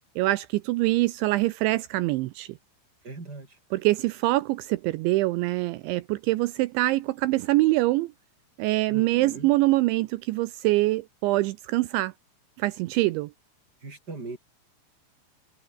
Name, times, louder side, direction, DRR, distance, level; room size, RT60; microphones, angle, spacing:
voice 1, 0.2-2.6 3.7-8.1 8.6-12.1 12.6-13.3, right 19 dB, 90° right, 2.7 m, -24 dB
voice 2, 3.0-3.6 8.9-9.5 13.8-14.4, right 3 dB, 20° right, 3.6 m, -39 dB
omnidirectional pair, 5.9 m